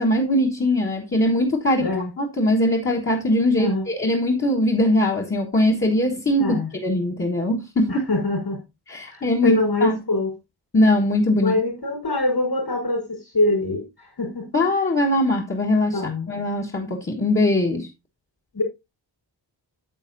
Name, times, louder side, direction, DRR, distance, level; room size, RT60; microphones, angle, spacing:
voice 1, 0.0-1.9 2.2-8.0 8.9-10.0 10.7-11.6 14.5-16.0 16.3-17.9, left 1 dB, 25° left, 1.4 m, -21 dB
voice 2, 1.8-2.1 3.6-3.9 6.4-6.7 7.9-8.6 9.1-10.3 11.4-14.5 15.9-16.3 18.5-18.6, left 2 dB, 60° left, 4.7 m, -24 dB
9.0 x 8.0 x 2.6 m
wide cardioid pair, 140°, 44 cm